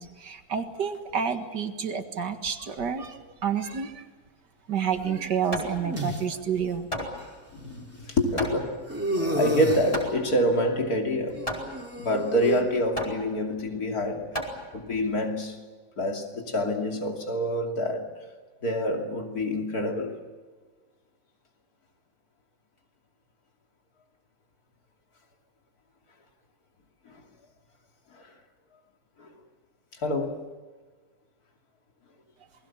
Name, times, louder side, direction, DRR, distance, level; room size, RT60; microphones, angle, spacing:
voice 1, 0.0-4.0 4.7-6.9, right 7 dB, 70° right, 2.3 m, -29 dB
Hammer, 4.9-15.1, equal, 20° left, 4.7 m, -37 dB
sound 1, 5.0-6.2 7.2-7.3 8.9-10.0 11.3-12.6, right 1 dB, 5° right, 3.2 m, -31 dB
voice 2, 7.5-11.5 12.0-14.2 14.7-15.6 16.0-18.1 18.6-20.2 27.1-27.2 28.1-28.3 29.2-29.3 30.0-30.4, left 1 dB, 55° left, 3.3 m, -27 dB
28.0 x 21.0 x 7.3 m
omnidirectional pair, 2.0 m